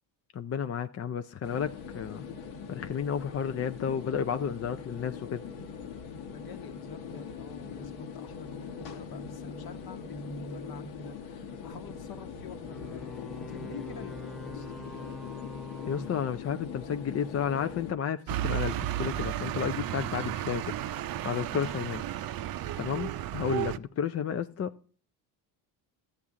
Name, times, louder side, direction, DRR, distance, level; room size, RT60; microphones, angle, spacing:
voice 1, 0.3-2.2 2.7-5.4 15.9-20.8 21.2-22.0 22.8-24.7, left 8 dB, 30° left, 0.5 m, -32 dB
sound 1, 1.4-17.9, left 5 dB, 70° left, 1.4 m, -41 dB
voice 2, 6.3-14.7, left 5 dB, 50° left, 1.2 m, -48 dB
sound 2, 12.7-17.1, left 3 dB, ahead, 0.7 m, -44 dB
sound 3, 18.3-23.8, right 13 dB, 45° right, 0.6 m, -33 dB
13.0 x 8.6 x 3.7 m
supercardioid pair, 70°, 49 cm